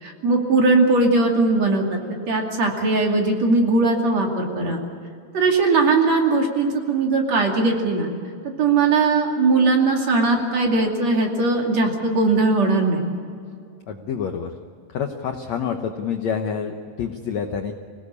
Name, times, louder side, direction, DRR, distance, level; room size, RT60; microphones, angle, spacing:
voice 1, 0.0-2.0 2.3-4.8 5.3-8.1 8.6-13.0, right 3 dB, 45° right, 1 dB, 3.5 m, -19 dB
voice 2, 13.9-14.5 14.9-17.7, left 7 dB, 70° left, 5 dB, 1.7 m, -27 dB
25.5 x 18.0 x 8.5 m, 2.3 s
omnidirectional pair, 4.5 m